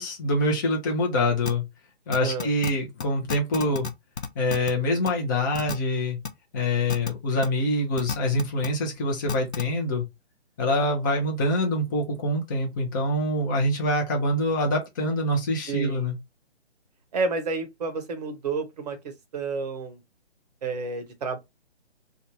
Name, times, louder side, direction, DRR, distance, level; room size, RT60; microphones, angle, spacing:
voice 1, 0.0-1.6 2.1-3.9 4.4-6.2 6.5-10.0 10.6-16.2, left 1 dB, 20° left, 0.7 m, -25 dB
sound 1, 1.5-1.6 2.1-2.7 3.0-3.1 3.3-3.9 4.2-4.7 5.1-5.2 5.5-5.7 6.2-6.3 6.9-7.1 7.4-7.5 8.0-8.7 9.3-9.6, left 6 dB, 75° left, 0.7 m, -30 dB
voice 2, 15.7-16.1 17.1-20.0 20.6-21.4, right 4 dB, 40° right, 0.8 m, -30 dB
2.5 x 2.3 x 2.9 m
figure-of-eight pair, 140°, 33 cm